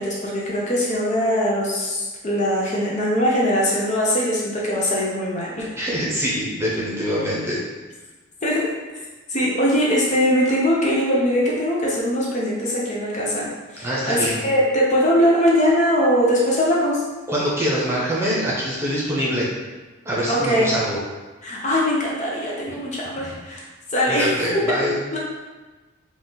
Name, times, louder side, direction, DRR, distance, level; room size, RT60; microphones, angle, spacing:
voice 1, 0.0-5.7 8.4-8.7 9.3-17.0 20.3-20.7 21.4-23.6 23.9-24.8 25.1-25.2, equal, 35° left, -4 dB, 0.6 m, -21 dB
voice 2, 5.8-7.6 13.8-14.4 17.3-19.5 20.0-21.0 23.1-23.4 24.1-25.0, equal, 10° right, -6 dB, 0.9 m, -24 dB
4.1 x 2.4 x 3.8 m, 1.3 s
head